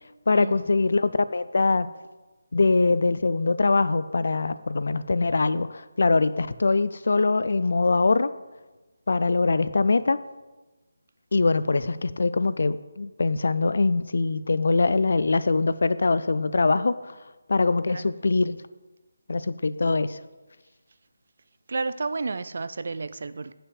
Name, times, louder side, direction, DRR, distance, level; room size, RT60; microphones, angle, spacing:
voice 1, 0.3-1.9 2.5-8.3 9.1-10.2 11.3-17.1 17.5-18.6 19.3-20.2, left 3 dB, 60° left, 0.4 m, -23 dB
voice 2, 21.7-23.5, right 3 dB, 50° right, 0.4 m, -31 dB
8.7 x 5.9 x 4.9 m
figure-of-eight pair, 175°, 0 cm